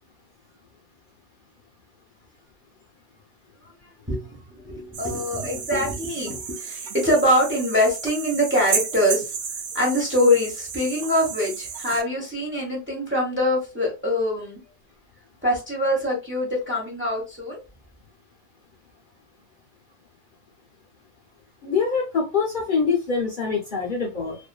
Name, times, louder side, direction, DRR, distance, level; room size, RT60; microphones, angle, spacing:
voice 1, 4.1-9.3 9.7-14.6 15.4-17.6, left 1 dB, 10° right, -3 dB, 0.8 m, -23 dB
sound 1, 4.9-12.0, right 6 dB, 65° right, 0.8 m, -32 dB
voice 2, 21.6-24.4, left 5 dB, 50° left, -4 dB, 0.8 m, -24 dB
2.6 x 2.5 x 2.2 m, 0.29 s
omnidirectional pair, 1.3 m